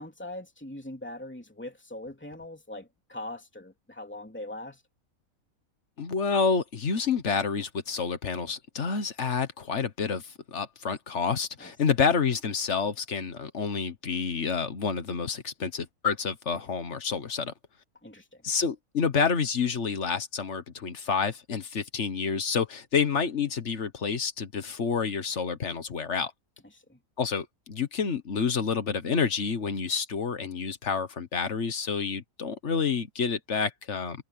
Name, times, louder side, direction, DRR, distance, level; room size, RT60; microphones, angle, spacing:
voice 1, 0.0-4.8 11.6-11.7 18.0-18.4 26.7-27.0, left 1 dB, 10° left, 3.1 m, -41 dB
voice 2, 6.0-17.5 18.4-26.3 27.2-34.2, left 5 dB, 55° left, 1.6 m, -29 dB
omnidirectional pair, 1.5 m